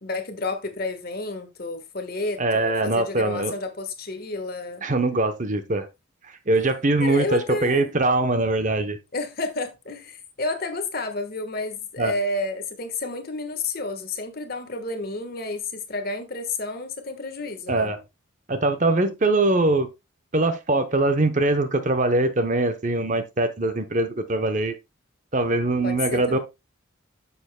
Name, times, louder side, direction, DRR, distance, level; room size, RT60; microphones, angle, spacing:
voice 1, 0.0-4.8 7.0-7.9 9.1-17.9 25.8-26.4, left 2 dB, 45° left, 1.4 m, -30 dB
voice 2, 2.4-3.5 4.8-5.9 6.5-9.0 12.0-12.1 17.7-18.0 18.5-19.9 20.3-24.8 25.3-26.4, right 2 dB, 35° right, 0.8 m, -22 dB
9.5 x 6.9 x 2.2 m
head